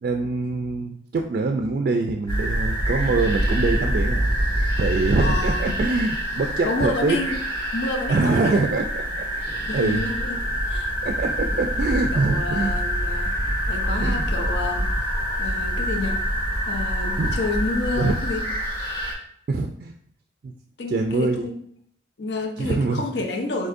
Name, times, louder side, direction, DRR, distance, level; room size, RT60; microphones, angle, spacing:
voice 1, 0.0-4.3 4.8-7.2 8.1-9.3 9.7-10.1 11.0-12.8 14.0-14.2 17.2-17.4 17.9-18.2 19.5-19.9 20.4-20.5 20.9-21.5 22.6-23.0, right 3 dB, 50° right, 4 dB, 0.3 m, -24 dB
sound 1, 2.3-19.1, equal, 25° left, 1.6 m, -25 dB
voice 2, 5.2-5.8 6.6-7.4 7.7-8.8 9.7-10.4 10.6-10.9 11.5-11.7 12.1-13.4 13.7-14.9 15.4-16.3 16.7-18.5 20.8-21.6 22.2-23.7, left 2 dB, 70° left, 4 dB, 0.6 m, -29 dB
5.0 x 4.0 x 2.5 m, 0.66 s
head